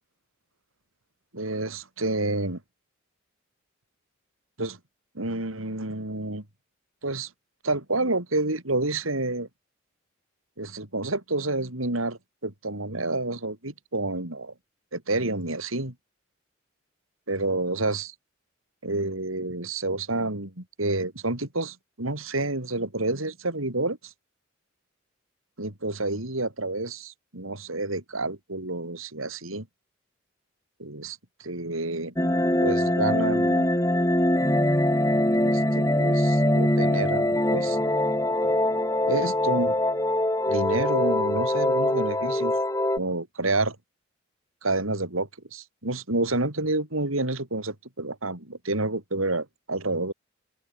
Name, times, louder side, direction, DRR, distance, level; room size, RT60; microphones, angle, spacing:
voice 1, 1.3-2.6 4.6-4.8 5.1-6.4 7.0-7.3 7.6-9.5 10.6-14.5 14.9-15.9 17.3-18.1 18.8-24.1 25.6-29.7 30.8-32.1 32.6-33.7 35.3-37.8 39.1-39.8 40.5-42.6 42.9-43.8 44.6-50.1, right 2 dB, 85° right, 4.9 m, -29 dB
sound 1, 32.2-43.0, left 1 dB, 15° left, 5.2 m, -23 dB
open air
head